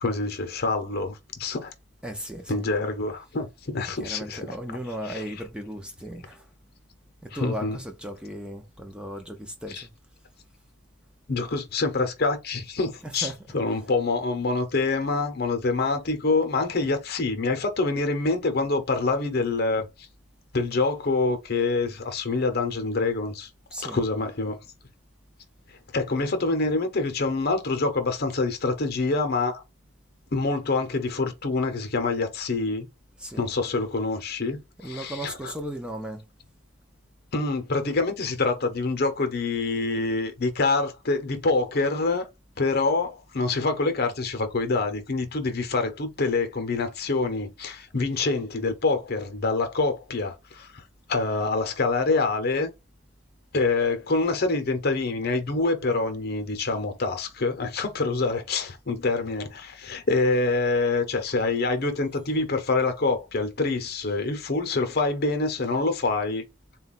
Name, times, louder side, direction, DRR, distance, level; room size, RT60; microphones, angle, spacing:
voice 1, 0.0-1.7 2.5-4.4 5.1-5.2 7.3-7.8 9.7-9.8 11.3-19.9 20.5-23.5 23.8-24.6 25.9-29.6 30.3-32.9 33.4-35.3 37.3-42.3 42.6-50.8 51.1-52.7 53.5-66.4, left 3 dB, 50° left, 0.8 m, -26 dB
voice 2, 2.0-2.7 4.0-6.5 7.2-9.9 13.0-13.7 23.7-24.0 33.2-33.5 34.8-36.3, right 1 dB, 5° right, 0.5 m, -36 dB
4.0 x 2.3 x 4.1 m
head